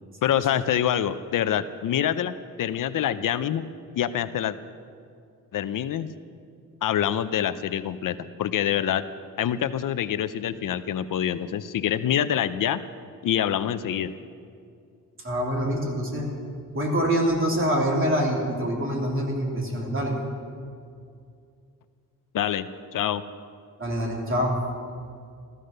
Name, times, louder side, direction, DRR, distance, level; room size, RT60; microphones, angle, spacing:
voice 1, 0.2-3.6 3.9-4.6 5.5-6.1 6.8-9.0 9.4-12.8 13.2-14.1 22.3-22.7 22.9-23.2, left 10 dB, 70° left, 12 dB, 0.6 m, -26 dB
voice 2, 15.2-16.3 16.7-20.1 23.8-24.5, equal, 40° right, -1 dB, 3.1 m, -25 dB
15.0 x 14.0 x 6.6 m, 2.3 s
wide cardioid pair, 145°, 34 cm